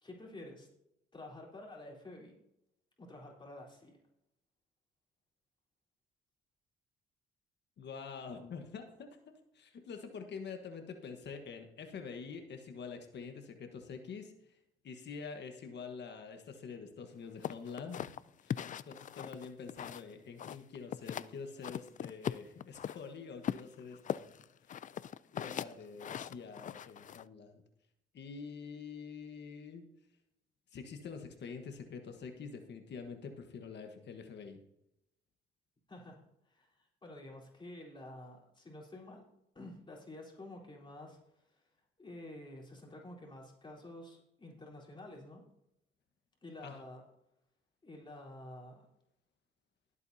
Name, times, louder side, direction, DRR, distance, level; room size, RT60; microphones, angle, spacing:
voice 1, 0.0-0.7 1.1-2.4 3.0-4.0 35.9-39.2 39.5-41.7 42.0-45.4 46.4-47.0 47.8-48.9, left 1 dB, 25° left, -3 dB, 3.8 m, -50 dB
voice 2, 7.8-14.6 14.8-18.1 18.4-24.4 24.6-24.9 25.3-27.6 28.1-29.8 30.7-34.6 46.6-46.8, left 5 dB, 60° left, 5 dB, 1.4 m, -46 dB
sound 1, 17.4-20.1 20.4-21.3 21.6-23.0 23.4-27.2, left 9 dB, 40° left, 0.4 m, -40 dB
19.0 x 8.2 x 2.8 m, 0.83 s
cardioid pair, 90°, 20 cm